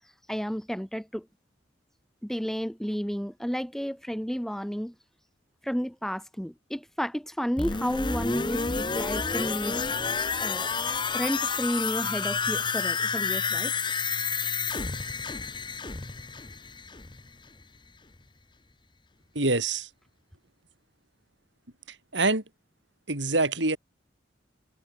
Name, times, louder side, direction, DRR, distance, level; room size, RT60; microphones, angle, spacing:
voice 1, 0.3-1.3 2.2-4.9 5.6-9.8 10.4-10.7 11.1-13.7, equal, ahead, 1.0 m, -32 dB
sound 1, 7.6-17.3 17.6-17.7, left 5 dB, 25° left, 1.0 m, -30 dB
voice 2, 19.3-19.9 21.9-22.4 23.1-23.8, right 2 dB, 75° right, 5.2 m, -25 dB
head